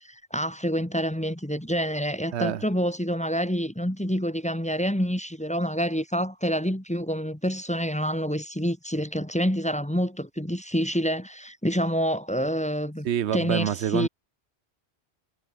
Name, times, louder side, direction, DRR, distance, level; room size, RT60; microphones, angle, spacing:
voice 1, 0.0-13.1 13.3-14.1, equal, 5° left, 1.5 m, -27 dB
voice 2, 2.3-2.6 13.0-14.1, right 10 dB, 85° right, 1.0 m, -26 dB
omnidirectional pair, 1.1 m